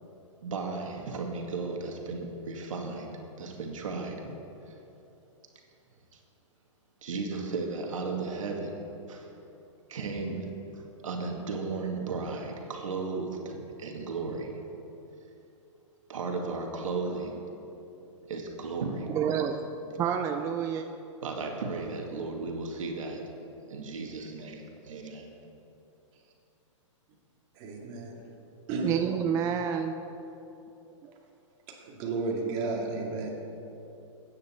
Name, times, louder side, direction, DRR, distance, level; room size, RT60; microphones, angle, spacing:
voice 1, 0.4-4.3 4.7-4.8 6.1-6.2 7.0-8.8 9.1-9.3 9.9-10.5 10.7-14.5 16.1-17.4 18.3-19.1 21.2-23.2 23.7-25.3, right 4 dB, 80° right, 2 dB, 1.9 m, -35 dB
voice 2, 19.1-20.9 28.8-29.9 31.0-31.1, right 8 dB, 20° right, 6 dB, 0.4 m, -29 dB
voice 3, 27.5-28.2 28.7-29.0 31.7-33.3, right 3 dB, 35° right, 0 dB, 2.2 m, -33 dB
14.5 x 9.2 x 4.4 m, 2.9 s
hypercardioid pair, 145°, 16 cm